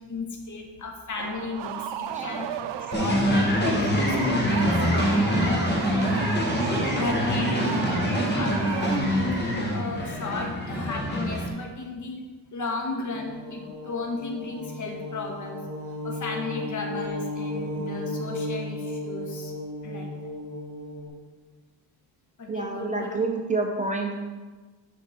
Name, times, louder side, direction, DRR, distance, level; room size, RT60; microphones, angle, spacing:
voice 1, 0.1-2.5 2.8-6.1 7.0-12.2 12.5-15.7 16.0-19.5 19.8-20.3 22.4-23.2, left 3 dB, 45° left, 2 dB, 1.5 m, -34 dB
sound 1, 1.2-9.5, right 10 dB, 75° right, 0.6 m, -34 dB
voice 2, 2.1-2.5 22.5-24.2, right 3 dB, 20° right, 2 dB, 0.6 m, -28 dB
sound 2, 2.9-11.5, equal, 25° left, 1.5 m, -25 dB
sound 3, 13.1-21.1, left 1 dB, 40° right, 2.7 m, -34 dB
12.0 x 5.0 x 4.2 m, 1.3 s
cardioid pair, 145°, 43 cm